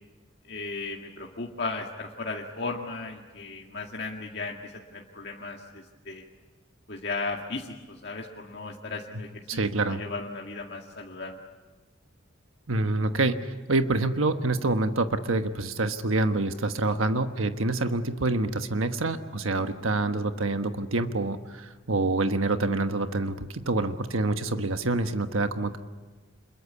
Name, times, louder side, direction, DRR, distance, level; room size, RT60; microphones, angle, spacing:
voice 1, 0.5-6.2 6.9-11.4, left 3 dB, 55° left, 0 dB, 2.0 m, -36 dB
voice 2, 9.5-10.0 12.7-25.8, right 2 dB, 90° right, 8 dB, 1.3 m, -27 dB
27.5 x 22.5 x 8.5 m, 1.3 s
head